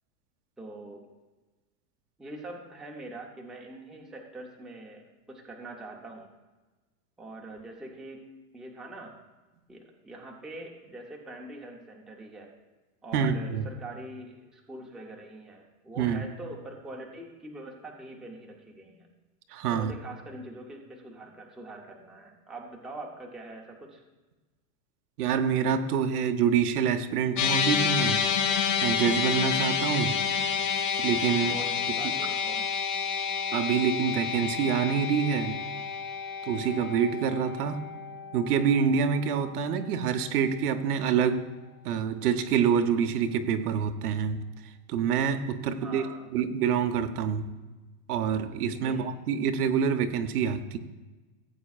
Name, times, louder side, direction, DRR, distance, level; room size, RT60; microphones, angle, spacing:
voice 1, 0.6-1.1 2.2-5.0 5.3-6.3 7.2-8.3 8.5-9.2 9.7-12.5 13.0-19.1 19.7-24.0 31.4-32.6 45.8-46.3 48.7-49.1, right 2 dB, ahead, -2 dB, 0.6 m, -43 dB
voice 2, 13.1-13.6 16.0-16.3 19.5-19.9 25.2-28.2 28.8-30.2 31.0-31.6 33.5-35.6 36.5-37.9 38.3-41.5 41.8-44.4 44.9-46.0 46.3-47.5 48.1-50.8, right 7 dB, 80° right, 8 dB, 0.9 m, -26 dB
sound 1, 27.4-39.8, left 7 dB, 80° left, 1.9 m, -29 dB
16.0 x 8.1 x 2.4 m, 1.2 s
supercardioid pair, 155°, 45 cm